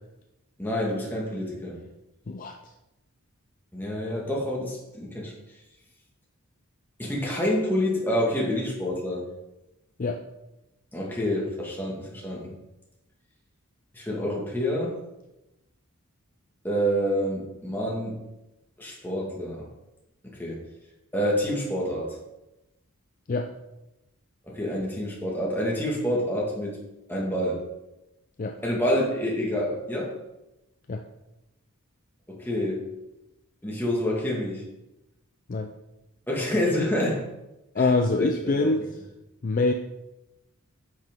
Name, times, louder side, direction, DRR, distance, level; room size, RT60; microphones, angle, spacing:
voice 1, 0.6-1.8 3.7-5.3 7.0-9.2 10.9-12.6 13.9-14.9 16.6-18.2 18.8-19.7 20.4-20.6 21.1-22.2 24.5-26.8 27.1-27.6 28.6-30.1 32.3-32.8 33.6-34.6 36.3-37.2 37.8-37.9 38.2-38.7, equal, 10° left, -4 dB, 1.8 m, -27 dB
voice 2, 37.7-38.8 39.4-39.7, left 3 dB, 35° left, 5 dB, 0.4 m, -24 dB
9.7 x 5.8 x 3.7 m, 0.95 s
head